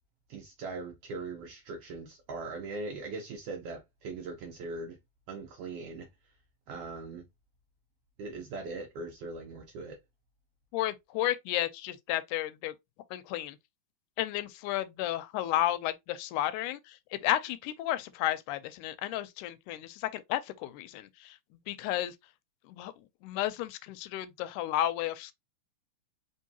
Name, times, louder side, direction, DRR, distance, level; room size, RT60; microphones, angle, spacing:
voice 1, 0.3-5.0 5.3-6.1 6.7-7.2 8.2-10.0, right 3 dB, 80° right, 1.3 m, -40 dB
voice 2, 10.7-12.7 13.1-13.6 14.2-21.4 21.7-22.2 22.7-22.9 23.2-25.3, left 13 dB, 85° left, 2.0 m, -32 dB
4.5 x 3.1 x 2.7 m
omnidirectional pair, 3.6 m